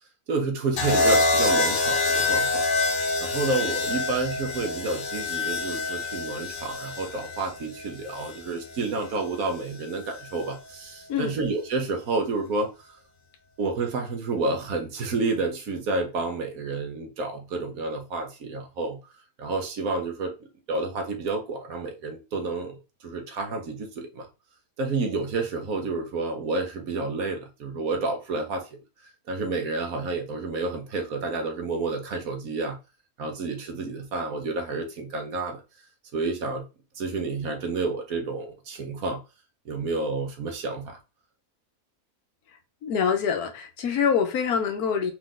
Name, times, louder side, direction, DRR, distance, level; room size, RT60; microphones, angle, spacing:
voice 1, 0.3-2.6 3.2-12.7 13.6-19.0 19.4-24.3 24.8-28.7 29.3-32.8 33.2-35.6 36.1-36.6 37.0-39.2 39.6-41.0, right 3 dB, 70° right, 1.5 m, -30 dB
sound 1, 0.8-8.9 10.1-10.5, left 3 dB, 45° left, 0.7 m, -26 dB
voice 2, 42.8-45.1, left 7 dB, 85° left, 1.3 m, -25 dB
4.7 x 2.5 x 3.8 m
omnidirectional pair, 1.6 m